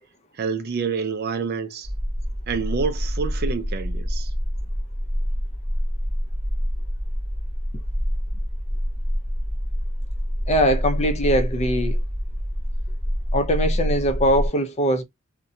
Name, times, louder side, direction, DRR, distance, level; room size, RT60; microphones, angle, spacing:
voice 1, 0.4-1.9 2.5-4.3, right 5 dB, 50° right, 0.4 m, -27 dB
sound 1, 1.8-14.5, equal, 20° right, 0.8 m, -26 dB
voice 2, 10.5-12.0 13.3-15.0, equal, 30° left, 0.5 m, -21 dB
2.6 x 2.1 x 2.7 m
head